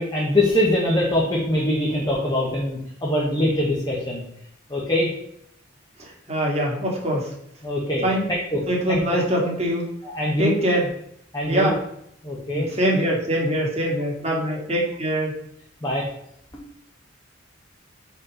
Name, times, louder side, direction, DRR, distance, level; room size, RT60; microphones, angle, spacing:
voice 1, 0.0-4.2 4.7-5.1 7.6-8.6 8.9-9.2 10.0-10.5 11.3-11.7 12.2-12.7 15.8-16.0, left 1 dB, 20° left, -5 dB, 1.4 m, -23 dB
voice 2, 6.0-7.3 8.0-8.2 8.7-9.9 10.4-10.9 11.5-11.8 12.5-15.3, equal, 30° right, -2 dB, 2.0 m, -23 dB
5.4 x 4.7 x 6.3 m, 0.73 s
head